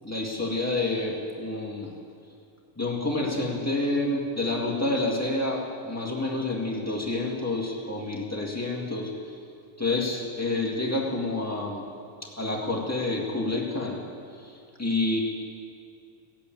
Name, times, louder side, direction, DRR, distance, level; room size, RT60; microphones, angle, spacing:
voice 1, 0.0-1.9 2.8-9.1 9.8-11.9 12.2-14.0 14.3-15.2, left 2 dB, 10° left, -2 dB, 1.1 m, -28 dB
16.5 x 8.3 x 9.1 m, 2.4 s
omnidirectional pair, 3.5 m